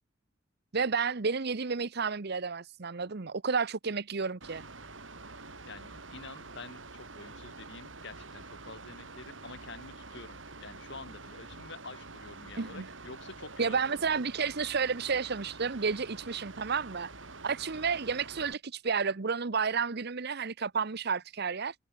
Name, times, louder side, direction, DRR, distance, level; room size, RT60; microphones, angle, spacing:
voice 1, 0.7-4.6 12.6-12.9 13.6-17.1 17.4-21.7, right 5 dB, 60° right, 1.0 m, -31 dB
Mechanical fan, 4.4-18.5, right 3 dB, 85° right, 5.5 m, -47 dB
voice 2, 5.7-14.0, left 3 dB, 65° left, 7.8 m, -48 dB
head